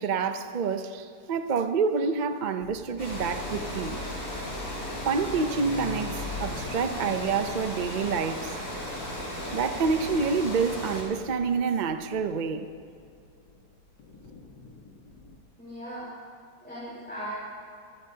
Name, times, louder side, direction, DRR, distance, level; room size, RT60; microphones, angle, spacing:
voice 1, 0.0-4.0 5.0-8.5 9.0-9.1 9.4-12.7, right 5 dB, 60° right, 0.4 m, -28 dB
sound 1, 2.6-15.4, left 3 dB, 85° left, 2.1 m, -45 dB
Water, 3.0-11.0, equal, 65° left, 5.5 m, -35 dB
voice 2, 15.6-16.1 16.6-17.3, equal, 5° left, 5.2 m, -38 dB
25.5 x 17.5 x 2.9 m
omnidirectional pair, 1.8 m